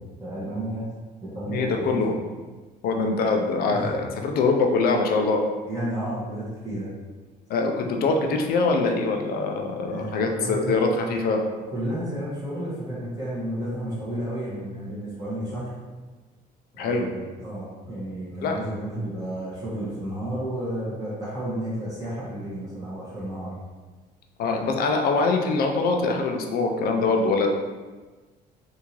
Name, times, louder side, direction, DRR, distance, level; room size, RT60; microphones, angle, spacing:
voice 1, 0.2-0.8 1.2-2.2 3.7-3.9 5.6-6.9 9.8-10.8 11.7-15.7 16.8-23.5, right 1 dB, 20° right, -11 dB, 1.3 m, -32 dB
voice 2, 1.5-2.1 2.8-5.4 7.5-11.4 16.8-17.1 18.4-18.6 24.4-27.5, left 3 dB, 65° left, 3 dB, 0.6 m, -23 dB
3.6 x 2.7 x 3.0 m, 1.3 s
cardioid pair, 110°, 17 cm